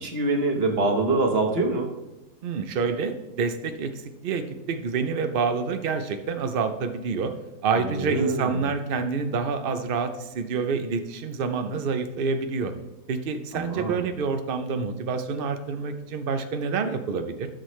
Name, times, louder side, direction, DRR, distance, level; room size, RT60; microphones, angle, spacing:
voice 1, 0.0-1.9 7.7-8.6 13.5-14.0, right 3 dB, 40° right, 3 dB, 1.2 m, -25 dB
voice 2, 2.4-7.3 7.6-12.7 13.1-17.5, right 5 dB, 85° right, 8 dB, 0.4 m, -27 dB
13.0 x 6.4 x 3.1 m, 0.99 s
omnidirectional pair, 1.8 m